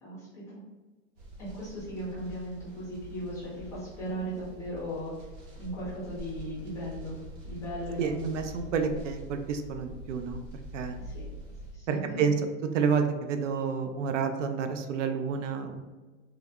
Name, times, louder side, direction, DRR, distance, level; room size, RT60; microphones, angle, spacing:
voice 1, 0.0-0.6 1.4-5.1 5.6-7.2 7.4-9.0 11.0-11.3 11.7-12.3, equal, 10° left, -8 dB, 0.4 m, -38 dB
sound 1, 1.2-11.8, right 1 dB, 45° right, 1.1 m, -44 dB
voice 2, 8.0-10.4 10.7-11.0 11.9-12.3 12.7-15.8, right 6 dB, 80° right, 7 dB, 0.5 m, -29 dB
3.4 x 2.0 x 3.4 m, 1.2 s
supercardioid pair, 160°, 36 cm